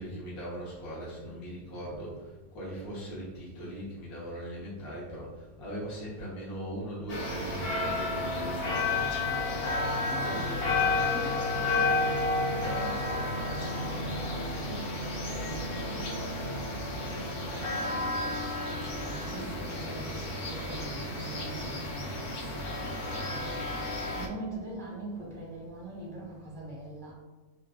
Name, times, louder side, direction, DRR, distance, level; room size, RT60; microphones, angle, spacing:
voice 1, 0.0-9.0, equal, 75° left, -7 dB, 1.5 m, -39 dB
sound 1, 7.1-24.3, left 2 dB, 60° left, 0.7 m, -31 dB
voice 2, 10.0-18.3 18.6-27.1, right 1 dB, 5° left, -4 dB, 0.6 m, -43 dB
4.7 x 2.4 x 2.3 m, 1.2 s
omnidirectional pair, 1.5 m